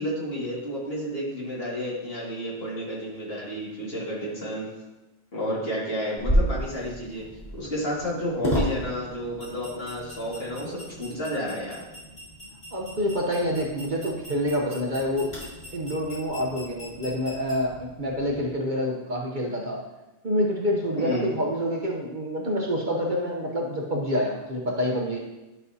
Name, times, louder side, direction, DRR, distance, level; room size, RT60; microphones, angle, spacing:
voice 1, 0.0-4.7 5.3-7.2 7.5-11.8 21.0-21.3, equal, 50° left, -6 dB, 2.3 m, -31 dB
sound 1, 6.2-18.4, equal, 30° left, 3.0 m, -33 dB
voice 2, 12.7-15.3 15.7-19.8 20.2-25.2, equal, 45° right, -1 dB, 0.9 m, -27 dB
11.0 x 5.6 x 2.7 m, 1.1 s
omnidirectional pair, 1.3 m